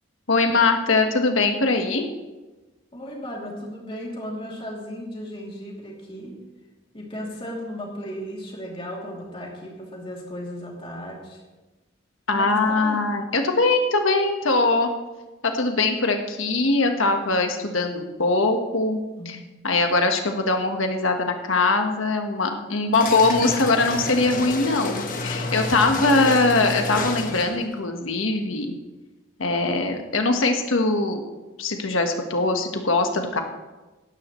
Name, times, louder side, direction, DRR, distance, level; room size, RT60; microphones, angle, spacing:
voice 1, 0.3-2.1 12.3-14.9 15.4-19.0 19.2-19.4 19.6-28.7 29.4-31.2 31.6-33.4, left 3 dB, 80° left, 5 dB, 1.4 m, -22 dB
voice 2, 2.9-6.4 6.9-11.4 12.3-13.0 19.2-19.4, equal, 25° left, -2 dB, 2.9 m, -35 dB
sound 1, 22.9-27.7, left 2 dB, 40° left, 1.3 m, -29 dB
17.0 x 12.0 x 3.2 m, 1.2 s
head